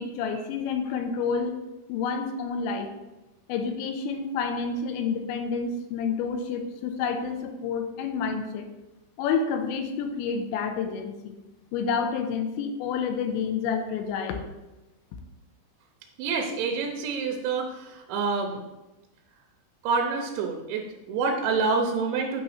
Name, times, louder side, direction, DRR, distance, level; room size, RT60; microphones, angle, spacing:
voice 1, 0.0-1.5 1.9-2.9 3.5-8.7 9.2-11.3 11.7-14.4, left 5 dB, 80° left, 6 dB, 3.0 m, -29 dB
voice 2, 16.2-18.6 19.8-22.4, right 4 dB, 90° right, 2 dB, 3.0 m, -27 dB
8.8 x 3.0 x 6.5 m, 1.0 s
omnidirectional pair, 5.3 m